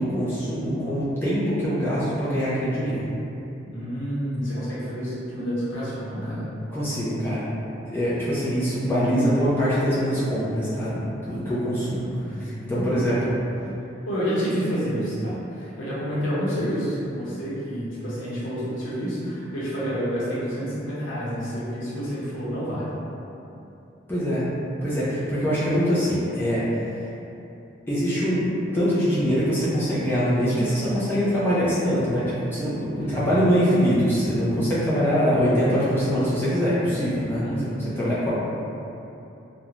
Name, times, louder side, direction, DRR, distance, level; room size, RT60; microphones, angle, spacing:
voice 1, 0.0-3.0 6.7-7.5 7.9-12.0 12.4-13.4 24.1-24.4 24.8-26.6 27.9-37.4 37.8-38.3, equal, 10° left, -10 dB, 0.4 m, -23 dB
voice 2, 3.6-6.5 11.9-12.9 14.1-22.9 33.0-33.3 37.4-38.3, equal, 75° left, -10 dB, 0.7 m, -29 dB
3.0 x 2.0 x 2.4 m, 2.8 s
head